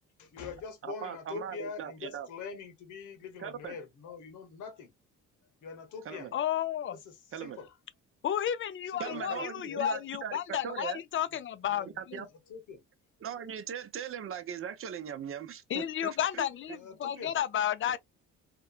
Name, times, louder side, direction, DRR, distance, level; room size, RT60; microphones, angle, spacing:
voice 1, 0.2-4.9 5.6-6.3 6.9-7.7 8.9-9.8 11.7-12.0 12.5-12.8 16.7-17.4, left 5 dB, 80° left, 1.1 m, -43 dB
voice 2, 0.8-2.3 3.4-3.8 6.0-6.3 7.3-7.6 9.0-11.0 11.8-12.3 13.2-16.4, right 8 dB, 45° right, 0.6 m, -39 dB
voice 3, 6.3-7.0 8.2-12.2 15.7-18.0, left 10 dB, 40° left, 0.4 m, -32 dB
2.9 x 2.2 x 2.3 m
cardioid pair, 90°, 30 cm